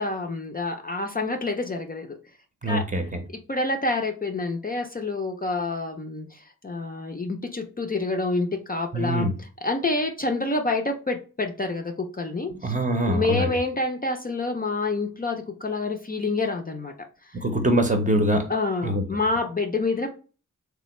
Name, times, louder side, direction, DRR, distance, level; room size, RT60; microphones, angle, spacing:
voice 1, 0.0-2.1 2.7-2.8 3.5-12.7 13.1-16.9 17.2-17.4 18.5-20.1, left 3 dB, 30° left, 3 dB, 0.5 m, -27 dB
voice 2, 2.6-3.2 8.9-9.3 12.5-13.6 17.3-18.5 18.8-19.0, right 1 dB, 25° right, 4 dB, 0.8 m, -24 dB
3.2 x 2.2 x 3.0 m, 0.36 s
cardioid pair, 60°, 32 cm